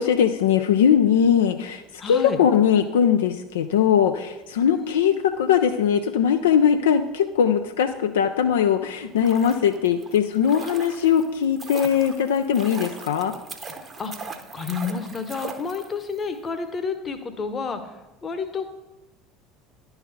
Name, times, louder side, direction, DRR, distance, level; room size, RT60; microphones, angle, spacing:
voice 1, 0.0-13.3, left 8 dB, 70° left, 7 dB, 0.3 m, -20 dB
voice 2, 2.0-2.4 4.7-5.2 14.0-18.7, left 5 dB, 30° left, 9 dB, 0.9 m, -30 dB
sound 1, 9.0-16.2 16.5-16.6, right 4 dB, 30° right, 0.8 m, -39 dB
11.0 x 3.9 x 4.0 m, 1.0 s
figure-of-eight pair, 65°, 0 cm